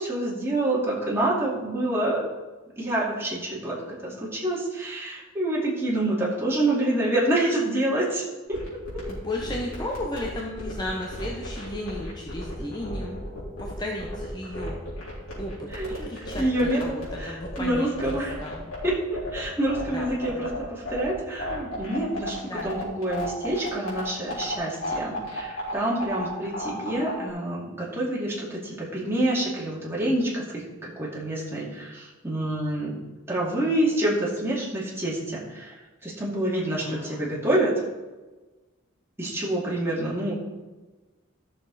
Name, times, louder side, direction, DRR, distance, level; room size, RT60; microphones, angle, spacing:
voice 1, 0.0-2.2 2.8-3.8 4.0-8.2 8.5-8.6 8.9-9.0 15.7-16.0 16.4-16.8 17.2-18.4 18.8-32.9 33.3-35.7 36.0-37.7 39.2-40.3, right 1 dB, 10° right, -6 dB, 2.4 m, -27 dB
sound 1, 8.5-27.3, left 1 dB, 85° left, 3.8 m, -33 dB
voice 2, 9.1-13.3 13.6-14.8 15.4-18.6 19.9-20.5 22.4-22.7 36.5-37.3, left 1 dB, 20° left, -1 dB, 0.9 m, -35 dB
13.5 x 6.6 x 4.1 m, 1.2 s
head